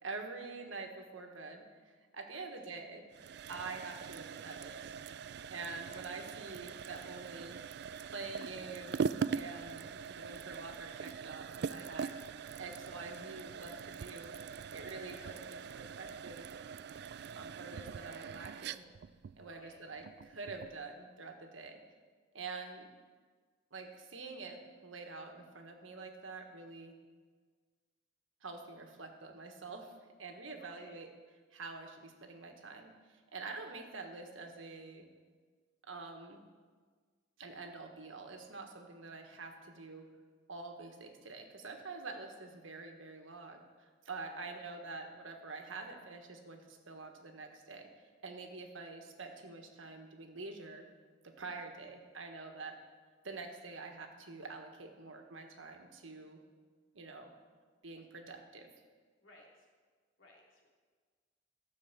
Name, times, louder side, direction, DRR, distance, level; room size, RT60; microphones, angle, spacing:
voice 1, 0.0-3.0 3.5-4.9 5.5-7.6 8.1-14.4 14.7-16.5 17.3-18.8 19.4-21.8 22.3-22.9 23.7-26.9 28.4-29.9 30.2-31.1 31.5-35.0 35.9-36.4 37.4-40.1 40.5-47.9 48.2-50.9 51.2-52.8 53.2-56.4 56.9-57.3 57.8-58.7, right 3 dB, 80° right, 4 dB, 1.5 m, -46 dB
sound 1, 3.1-20.8, right 6 dB, 55° right, 0.3 m, -42 dB
voice 2, 19.4-19.8 30.6-31.0 44.4-44.5 59.2-59.7 60.2-60.7, left 1 dB, 75° left, -2 dB, 3.0 m, -59 dB
13.5 x 6.5 x 7.3 m, 1.5 s
head